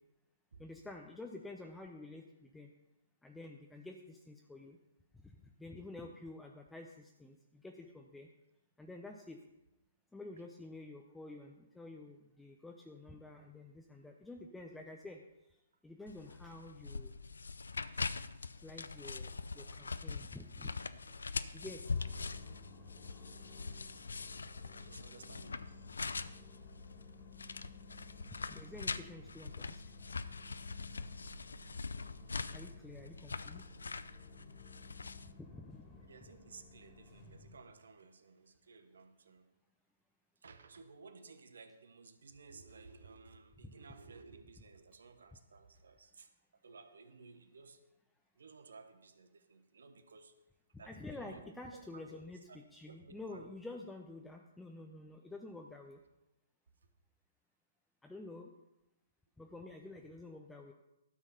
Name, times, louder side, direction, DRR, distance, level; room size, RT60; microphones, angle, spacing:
voice 1, 0.6-2.7 3.2-4.8 5.2-8.3 8.8-9.4 10.1-15.2 15.8-17.1 18.6-20.7 21.5-21.9 28.5-29.8 32.5-33.7 35.3-36.0 43.6-43.7 50.7-56.0 58.0-58.5 59.4-60.7, left 2 dB, 5° left, 2 dB, 0.7 m, -49 dB
sound 1, 16.1-35.3, left 4 dB, 75° left, 0.4 m, -43 dB
Bowed string instrument, 18.5-22.9, right 3 dB, 40° right, 3.2 m, -65 dB
sound 2, 21.8-37.6, left 2 dB, 30° left, 2.2 m, -56 dB
voice 2, 24.7-25.6 36.1-39.5 40.4-46.3 46.6-47.8 48.3-50.3 50.8-52.2 52.5-52.6 52.9-53.4, right 4 dB, 65° right, 8 dB, 1.1 m, -56 dB
12.5 x 6.2 x 5.6 m, 0.93 s
figure-of-eight pair, 120°, 0 cm